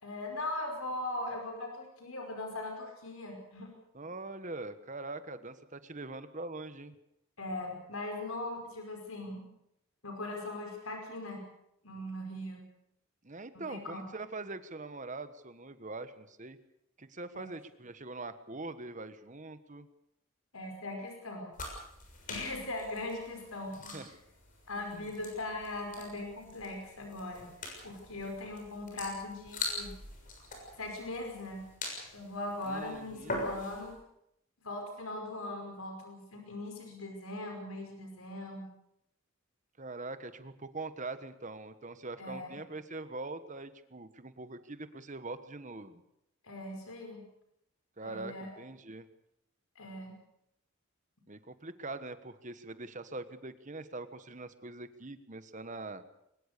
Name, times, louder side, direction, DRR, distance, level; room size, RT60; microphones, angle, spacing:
voice 1, 0.0-3.7 7.4-9.5 10.0-11.4 11.8-12.7 13.7-14.1 17.3-17.5 20.5-21.5 22.3-24.0 24.7-27.5 27.8-29.9 30.8-31.7 32.1-34.0 34.6-38.7 42.2-42.6 46.4-47.3 48.0-48.5 49.8-50.2, left 2 dB, 90° left, 3 dB, 5.2 m, -40 dB
voice 2, 3.9-7.0 13.2-16.6 17.0-19.9 23.9-24.1 24.8-25.1 32.6-33.4 39.8-46.0 48.0-49.1 51.3-56.0, right 3 dB, 35° right, 12 dB, 1.3 m, -43 dB
sound 1, 21.5-33.9, left 2 dB, 40° left, 6.6 m, -43 dB
23.0 x 20.5 x 6.8 m, 0.79 s
head